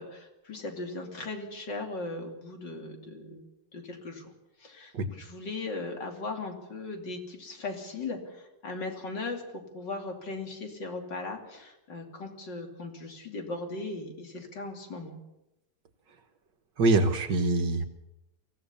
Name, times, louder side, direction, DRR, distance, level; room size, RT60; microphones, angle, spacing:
voice 1, 0.0-3.5 3.7-4.3 4.6-9.4 9.7-15.2, left 3 dB, 55° left, 3 dB, 3.5 m, -38 dB
voice 2, 16.8-17.9, right 3 dB, 60° right, 7 dB, 1.9 m, -24 dB
24.5 x 16.0 x 7.1 m, 0.93 s
omnidirectional pair, 2.4 m